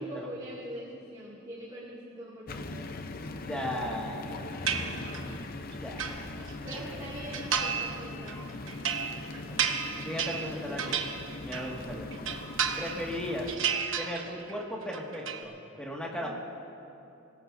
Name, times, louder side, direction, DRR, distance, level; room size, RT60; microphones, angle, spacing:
voice 1, 0.0-2.9 4.7-5.5 6.6-8.6 10.4-11.0 11.7-12.0 16.1-16.3, right 1 dB, 25° right, -8 dB, 2.3 m, -43 dB
sound 1, 2.5-13.6, left 2 dB, 45° left, 0.7 m, -40 dB
voice 2, 3.3-4.7 5.7-6.0 6.3-6.4 9.3-9.7 10.0-11.0 11.4-12.1 12.8-13.5 14.0-16.3, equal, 5° left, -3 dB, 2.0 m, -37 dB
sound 2, 4.7-5.4 5.7-6.8 7.3-8.0 8.3-11.8 12.1-13.2 13.5-14.5 14.8-15.4, right 7 dB, 70° right, 1.1 m, -32 dB
26.5 x 17.5 x 2.7 m, 2.8 s
head